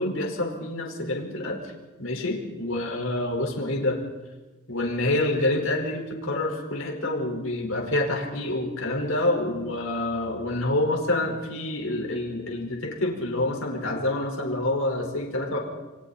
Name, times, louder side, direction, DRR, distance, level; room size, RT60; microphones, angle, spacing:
voice 1, 0.0-1.6 2.0-4.0 4.7-15.6, left 1 dB, 70° left, 1 dB, 4.8 m, -27 dB
29.5 x 22.5 x 4.3 m, 1.2 s
head